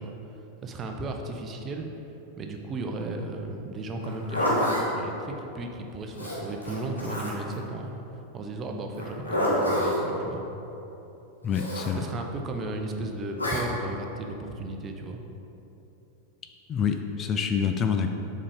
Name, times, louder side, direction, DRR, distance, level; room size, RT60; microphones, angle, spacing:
voice 1, 0.0-1.9 2.4-10.4 11.9-15.2, right 2 dB, 25° right, 3 dB, 0.7 m, -35 dB
Zipper (clothing), 4.0-4.8 6.1-7.5 8.9-10.0 11.5-11.9 13.4-13.6, equal, 80° left, 1.6 m, -27 dB
voice 2, 11.4-12.0 16.7-18.1, left 7 dB, 25° left, 5 dB, 0.4 m, -26 dB
7.3 x 4.9 x 4.9 m, 3.0 s
figure-of-eight pair, 90°, 0 cm